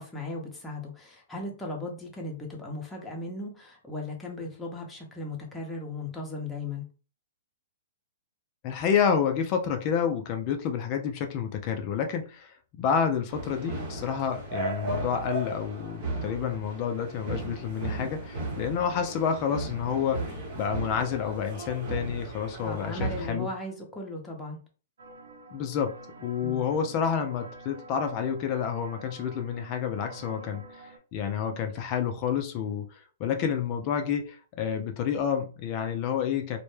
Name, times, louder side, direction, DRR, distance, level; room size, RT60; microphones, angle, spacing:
voice 1, 0.0-6.8 18.5-18.8 22.6-24.6 26.4-26.6, left 2 dB, 10° left, 0.7 m, -37 dB
voice 2, 8.6-23.5 25.5-36.6, left 7 dB, 35° left, 0.4 m, -29 dB
sound 1, 13.3-23.3, right 2 dB, 45° right, 0.9 m, -36 dB
sound 2, 25.0-31.0, right 3 dB, 85° right, 0.6 m, -48 dB
2.1 x 2.1 x 3.1 m
hypercardioid pair, 140°, 0 cm